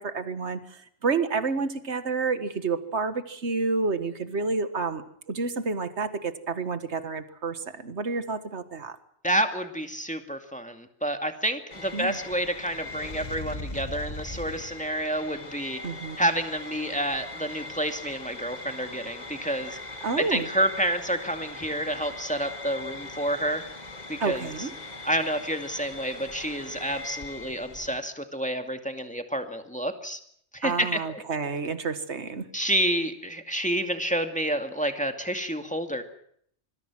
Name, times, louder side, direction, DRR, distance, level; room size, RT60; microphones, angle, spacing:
voice 1, 0.0-9.0 11.9-12.2 15.8-16.2 20.0-20.5 24.2-24.7 30.6-32.5, right 4 dB, 70° right, 11 dB, 2.0 m, -29 dB
voice 2, 9.2-19.8 20.2-23.6 24.1-24.5 25.0-30.2 30.5-31.2 32.5-36.0, right 1 dB, 5° left, 6 dB, 2.2 m, -29 dB
sound 1, 11.7-28.0, left 2 dB, 35° left, 2.0 m, -40 dB
26.0 x 22.0 x 6.2 m, 0.66 s
omnidirectional pair, 1.2 m